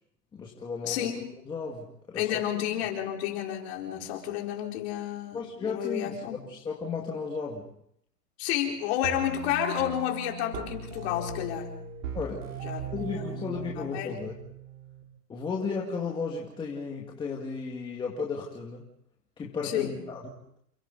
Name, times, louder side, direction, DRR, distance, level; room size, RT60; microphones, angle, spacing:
voice 1, 0.3-1.1 1.5-2.3 5.3-7.7 12.1-12.6 12.9-14.3 15.3-18.9 19.4-20.2, left 5 dB, 10° left, -1 dB, 1.9 m, -34 dB
voice 2, 0.8-1.2 2.2-6.4 8.4-11.7 12.6-12.9 13.2-14.2 19.6-20.0, left 11 dB, 40° left, 1 dB, 4.3 m, -31 dB
sound 1, 9.0-15.0, right 5 dB, 50° right, 4.4 m, -39 dB
28.5 x 25.0 x 4.0 m, 0.71 s
hypercardioid pair, 150°, 48 cm